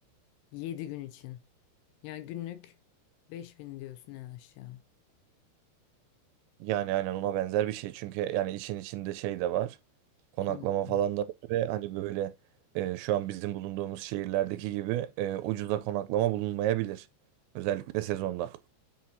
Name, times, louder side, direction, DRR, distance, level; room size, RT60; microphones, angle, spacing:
voice 1, 0.5-1.4 2.0-2.8 3.3-4.8 10.5-11.0, left 13 dB, 80° left, 2.6 m, -41 dB
voice 2, 6.6-9.8 10.4-12.3 12.8-17.1 17.6-18.6, right 13 dB, 90° right, 2.9 m, -31 dB
8.1 x 5.8 x 2.7 m
omnidirectional pair, 5.1 m